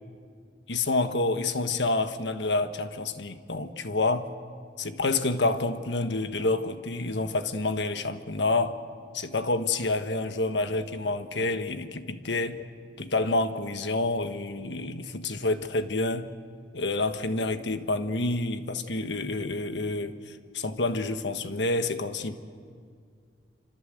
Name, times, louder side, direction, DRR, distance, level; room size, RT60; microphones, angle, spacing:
voice 1, 0.7-4.3 4.8-8.8 9.1-12.6 13.0-16.3 16.7-20.2 20.5-22.3, left 2 dB, 75° left, 1.4 m, -28 dB
28.0 x 26.0 x 7.8 m
head